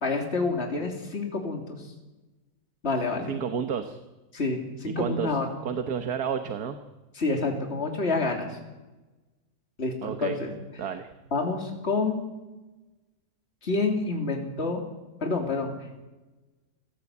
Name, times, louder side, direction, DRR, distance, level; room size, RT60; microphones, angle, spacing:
voice 1, 0.0-1.9 2.8-3.3 4.3-5.5 7.1-8.6 9.8-10.5 11.3-12.2 13.6-14.8 15.2-15.7, left 3 dB, 45° left, 2 dB, 3.3 m, -28 dB
voice 2, 3.3-4.0 5.0-5.4 5.7-6.8 10.0-10.4 10.8-11.1, right 7 dB, 80° right, 8 dB, 1.8 m, -30 dB
28.0 x 17.0 x 8.4 m, 1.1 s
omnidirectional pair, 1.6 m